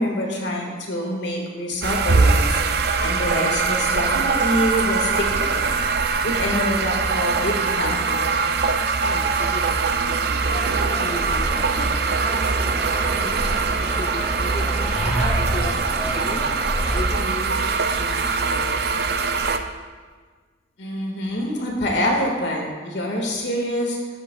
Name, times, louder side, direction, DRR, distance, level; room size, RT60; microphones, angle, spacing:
voice 1, 0.0-2.6 3.0-5.7 6.2-8.3 20.8-24.0, equal, 65° left, -1 dB, 1.7 m, -25 dB
sound 1, 1.8-19.6, right 4 dB, 55° right, 0.5 m, -22 dB
voice 2, 8.9-18.7 19.4-19.8, left 2 dB, 30° left, -1 dB, 0.5 m, -37 dB
sound 2, 10.4-17.1, equal, 5° right, 1.6 m, -29 dB
13.0 x 7.1 x 2.3 m, 1.5 s
head